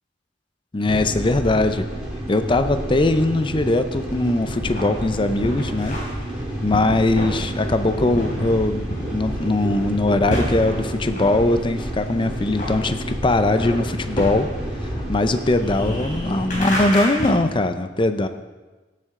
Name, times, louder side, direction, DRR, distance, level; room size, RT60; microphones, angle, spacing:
voice 1, 0.7-1.9 2.3-6.0 6.6-14.5 15.1-18.3, left 2 dB, 25° left, 9 dB, 0.5 m, -21 dB
sound 1, 0.8-16.9, right 1 dB, 5° right, 4.3 m, -30 dB
sound 2, 4.1-17.3, equal, 45° left, 3.4 m, -31 dB
16.5 x 7.6 x 3.7 m, 1.2 s
head